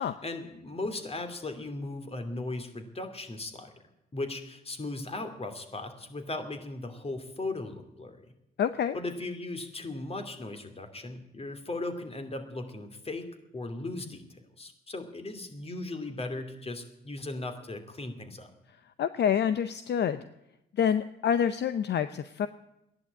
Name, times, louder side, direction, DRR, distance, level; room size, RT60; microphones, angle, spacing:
voice 1, 0.0-3.7 4.1-8.3 8.9-13.2 13.5-18.5, left 2 dB, 30° left, 7 dB, 2.7 m, -37 dB
voice 2, 8.6-9.0 19.0-20.2 20.7-22.5, left 8 dB, 55° left, 12 dB, 0.7 m, -27 dB
14.5 x 11.0 x 8.6 m, 0.86 s
supercardioid pair, 70°, 21 cm